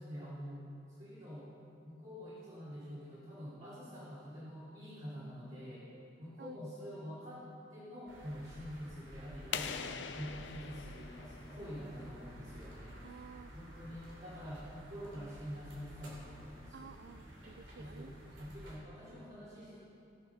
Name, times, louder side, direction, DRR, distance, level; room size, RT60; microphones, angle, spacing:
voice 1, 0.0-1.5 1.8-5.9 6.2-13.0 13.5-16.9 17.7-19.8, equal, 45° right, -12 dB, 3.1 m, -47 dB
sound 1, 8.1-18.8, equal, 80° right, 3.2 m, -53 dB
sound 2, 9.5-12.2, left 7 dB, 70° left, 0.6 m, -42 dB
voice 2, 12.9-14.6 16.7-18.6, right 5 dB, 60° right, 13 dB, 0.4 m, -54 dB
18.0 x 6.8 x 5.7 m, 2.8 s
head